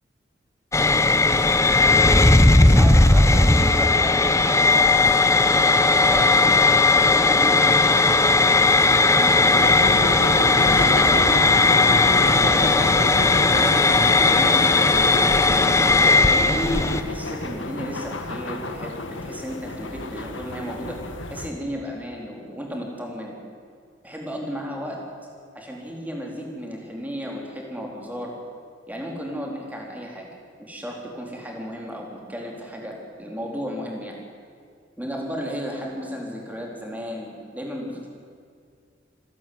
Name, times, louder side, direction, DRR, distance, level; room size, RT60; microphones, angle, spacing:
sound 1, 0.7-17.0, left 3 dB, 15° left, 0.9 m, -17 dB
voice 1, 2.6-5.0 5.7-8.4 8.8-9.8 10.4-12.2 12.4-13.0 13.6-15.2 16.0-21.0 21.3-23.3 24.0-25.0 25.5-28.3 28.9-30.3 30.6-34.2 35.0-38.1, equal, 10° right, -1 dB, 4.1 m, -34 dB
sound 2, 9.5-21.5, left 2 dB, 75° left, 1.7 m, -31 dB
27.0 x 12.5 x 9.7 m, 2.2 s
head